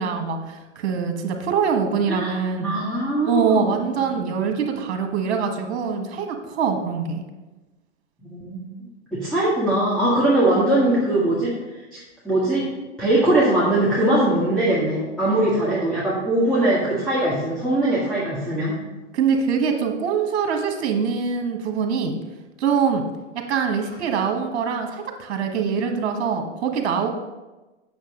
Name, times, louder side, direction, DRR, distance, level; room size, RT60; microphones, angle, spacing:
voice 1, 0.0-2.7 3.3-7.2 19.1-22.1 22.6-23.0 23.3-27.1, right 6 dB, 60° right, 4 dB, 1.5 m, -24 dB
voice 2, 2.6-3.7 4.2-4.3 8.2-8.6 9.1-12.0 12.2-12.6 13.0-18.8, right 1 dB, ahead, -10 dB, 1.9 m, -21 dB
8.1 x 6.5 x 3.8 m, 1.1 s
hypercardioid pair, 115°, 36 cm